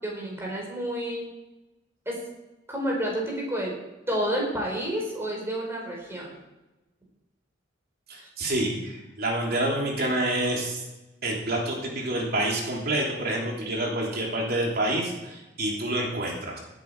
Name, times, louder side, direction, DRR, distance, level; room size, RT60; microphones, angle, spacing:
voice 1, 0.0-1.2 2.0-2.2 2.7-3.7 4.1-6.3, equal, 15° right, -2 dB, 4.6 m, -29 dB
voice 2, 8.1-10.8 11.2-16.6, right 1 dB, 55° right, -1 dB, 3.3 m, -28 dB
17.0 x 9.1 x 4.9 m, 1.0 s
head